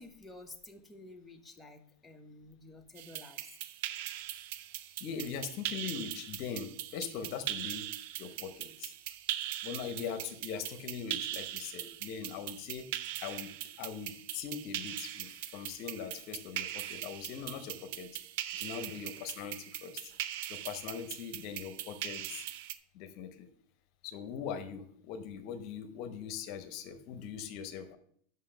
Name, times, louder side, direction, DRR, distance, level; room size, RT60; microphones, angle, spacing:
voice 1, 0.0-3.4, left 2 dB, 10° left, 3 dB, 1.0 m, -51 dB
sound 1, 3.0-22.8, right 13 dB, 65° right, 0.5 m, -41 dB
voice 2, 5.0-7.9 8.2-8.9 9.6-12.9 13.2-13.5 13.8-18.2 18.5-20.2 20.5-22.4 22.9-23.5 24.0-28.0, left 7 dB, 55° left, 9 dB, 0.9 m, -41 dB
5.7 x 5.6 x 6.5 m, 0.62 s
supercardioid pair, 115°, 0 cm